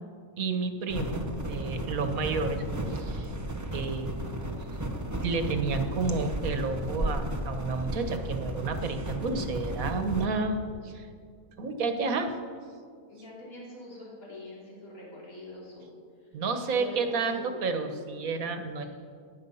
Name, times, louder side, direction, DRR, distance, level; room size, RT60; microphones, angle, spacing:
voice 1, 0.4-3.3 3.7-4.1 5.2-11.1 11.6-12.3 16.3-18.8, right 4 dB, 85° right, 7 dB, 1.6 m, -31 dB
sound 1, 0.9-10.3, right 1 dB, 15° right, 0.9 m, -34 dB
voice 2, 13.1-16.0 16.7-17.8, left 2 dB, 90° left, -6 dB, 3.5 m, -44 dB
16.0 x 10.5 x 5.6 m, 2.2 s
omnidirectional pair, 1.4 m